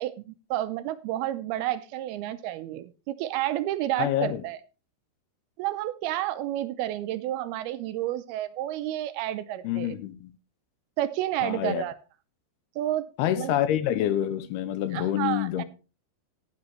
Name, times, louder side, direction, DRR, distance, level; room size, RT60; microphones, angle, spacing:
voice 1, 0.0-4.6 5.6-10.0 11.0-11.9 12.8-13.0 13.4-13.6 14.9-15.6, right 14 dB, 80° right, 2.4 m, -30 dB
voice 2, 4.0-4.4 9.6-10.3 11.4-11.8 13.2-15.6, left 11 dB, 80° left, 2.7 m, -27 dB
14.5 x 9.7 x 3.2 m
omnidirectional pair, 4.7 m